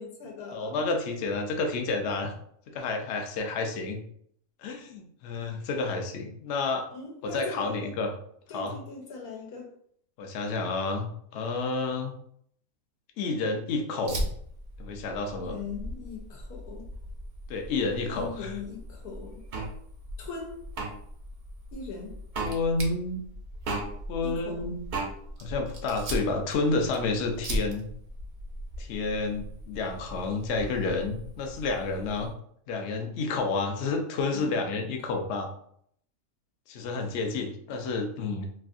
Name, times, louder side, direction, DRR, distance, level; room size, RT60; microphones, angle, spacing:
voice 1, 0.0-0.8 6.9-7.9 8.5-9.7 15.4-16.8 18.1-19.4 20.2-20.6 21.7-22.2 24.2-24.7 34.3-34.9, left 4 dB, 90° left, 0 dB, 1.3 m, -40 dB
voice 2, 0.5-2.3 2.7-4.0 4.6-6.9 7.2-8.1 8.5-8.8 10.2-11.1 11.3-12.1 13.2-14.2 14.8-15.6 17.5-18.5 22.4-23.2 24.1-24.8 25.4-27.8 28.8-32.3 32.7-35.5 36.7-38.6, left 3 dB, 65° left, 4 dB, 0.7 m, -30 dB
Fire, 14.1-32.3, equal, 60° right, 0.6 m, -39 dB
sound 1, 19.5-19.7 20.7-20.9 22.3-22.5 23.6-23.9 24.9-25.1, right 4 dB, 85° right, 1.3 m, -31 dB
3.2 x 2.6 x 2.5 m, 0.66 s
omnidirectional pair, 1.6 m